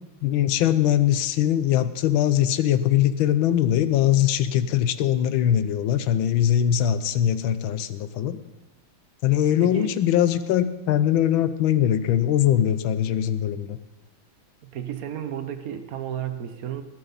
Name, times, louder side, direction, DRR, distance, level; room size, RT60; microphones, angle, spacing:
voice 1, 0.2-8.4 9.2-13.8, left 11 dB, 80° left, 12 dB, 1.5 m, -21 dB
voice 2, 9.6-9.9 14.6-16.8, right 9 dB, 55° right, 9 dB, 1.2 m, -32 dB
19.5 x 10.5 x 4.1 m, 1.1 s
omnidirectional pair, 2.2 m